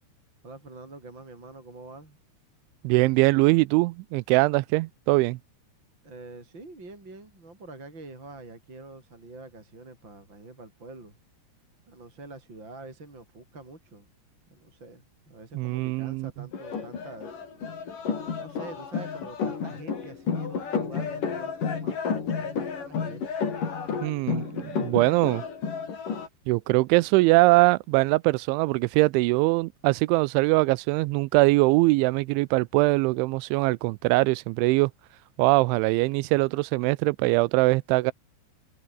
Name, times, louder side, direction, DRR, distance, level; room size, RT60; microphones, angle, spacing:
voice 1, 0.4-2.2 6.0-11.2 11.9-14.1 14.5-17.7 18.4-22.0 22.3-23.3, right 2 dB, 25° right, 6.4 m, -45 dB
voice 2, 2.8-5.4 15.5-16.3 24.0-25.4 26.5-34.9 35.4-38.1, right 23 dB, 85° right, 3.0 m, -22 dB
sound 1, 16.5-26.3, left 6 dB, 45° left, 5.4 m, -31 dB
omnidirectional pair, 5.3 m